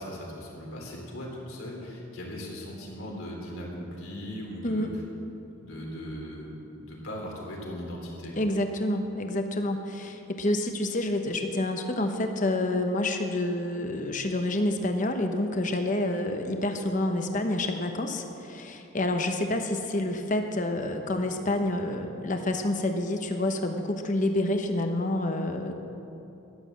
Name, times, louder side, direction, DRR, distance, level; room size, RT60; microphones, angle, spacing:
voice 1, 0.0-4.9 5.6-8.3, equal, 80° left, -2 dB, 3.6 m, -38 dB
voice 2, 8.4-25.7, left 1 dB, 35° left, 5 dB, 0.9 m, -28 dB
12.0 x 11.0 x 7.5 m, 3.0 s
head